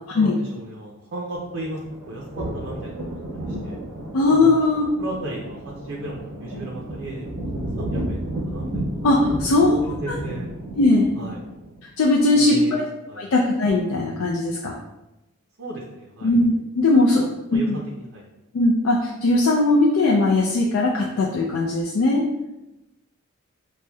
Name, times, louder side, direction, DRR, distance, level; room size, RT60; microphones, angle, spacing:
voice 1, 0.1-3.2 3.5-3.8 4.3-4.6 5.0-8.9 9.8-10.5 11.2-11.4 12.3-13.3 15.6-16.3 16.9-17.0 17.5-18.3, right 1 dB, 55° right, -2 dB, 0.5 m, -35 dB
sound 1, 1.3-11.7, right 1 dB, 30° right, 0.9 m, -32 dB
voice 2, 4.1-4.9 9.0-9.8 10.1-10.2 10.8-11.1 12.0-12.8 13.2-14.7 16.2-17.2 17.5-17.8 18.5-22.2, left 2 dB, 65° left, -2 dB, 0.4 m, -19 dB
5.7 x 2.1 x 2.2 m, 0.99 s
head